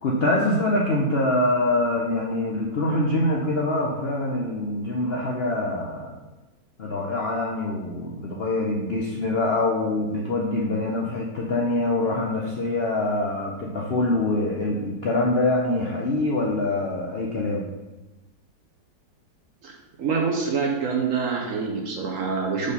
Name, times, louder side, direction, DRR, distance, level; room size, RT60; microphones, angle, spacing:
voice 1, 0.0-6.2 6.8-17.7, left 2 dB, 60° left, -2 dB, 0.6 m, -24 dB
voice 2, 20.0-22.7, right 5 dB, 60° right, 1 dB, 1.0 m, -26 dB
5.0 x 4.2 x 5.4 m, 1.1 s
omnidirectional pair, 1.9 m